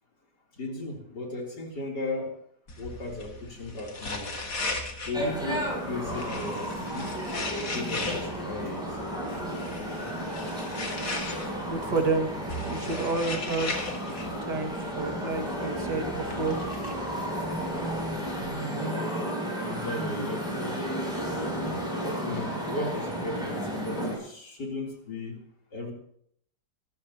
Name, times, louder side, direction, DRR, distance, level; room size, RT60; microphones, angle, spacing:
voice 1, 0.6-2.4 2.8-4.3 5.1-7.2 7.6-9.0 19.7-20.9 22.0-25.4 25.7-25.9, left 2 dB, 90° left, 0 dB, 4.1 m, -36 dB
sound 1, 2.7-18.5, left 2 dB, 55° left, 2.7 m, -38 dB
sound 2, 5.1-24.2, equal, ahead, 7.7 m, -33 dB
voice 2, 11.7-12.3 12.6-14.0 14.4-16.5, right 3 dB, 85° right, 4 dB, 2.7 m, -30 dB
24.0 x 14.5 x 2.9 m, 0.66 s
omnidirectional pair, 1.8 m